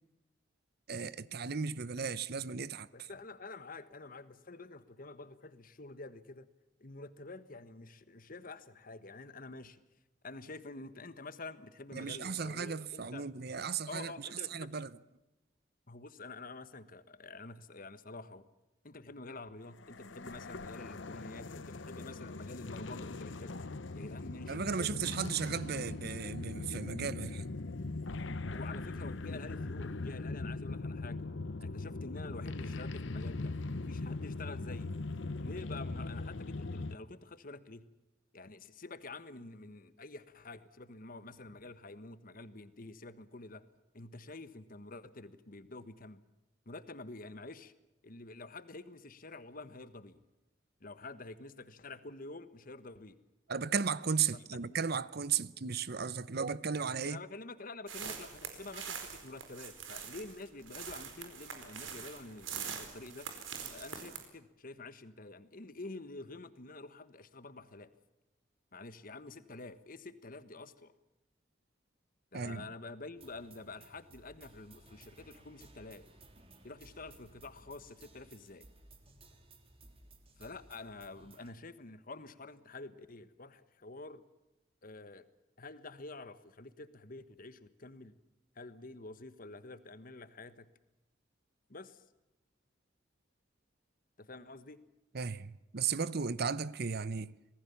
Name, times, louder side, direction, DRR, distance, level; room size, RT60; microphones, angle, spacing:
voice 1, 0.9-2.9 11.9-14.1 14.5-14.9 24.5-27.4 53.5-57.2 72.3-72.7 95.1-97.3, right 6 dB, 55° right, 0.8 m, -35 dB
voice 2, 2.9-6.5 6.8-9.8 10.2-13.3 13.9-14.7 15.9-18.5 18.8-23.6 23.9-25.6 28.5-31.3 31.6-33.5 33.9-35.0 35.4-37.9 38.3-43.6 43.9-46.2 46.6-47.7 48.0-50.2 50.8-53.2 54.3-54.8 57.0-63.3 63.7-67.9 68.7-70.9 72.3-76.0 76.6-78.7 80.4-84.2 84.8-85.3 85.6-88.1 88.5-90.7 91.7-92.0 94.2-94.8, left 2 dB, 50° left, 1.4 m, -48 dB
sound 1, 19.8-37.0, left 3 dB, 75° left, 0.9 m, -40 dB
sound 2, 57.9-64.3, right 7 dB, 90° right, 4.5 m, -44 dB
sound 3, 73.2-81.5, right 2 dB, 30° right, 3.4 m, -59 dB
26.5 x 19.5 x 7.2 m
head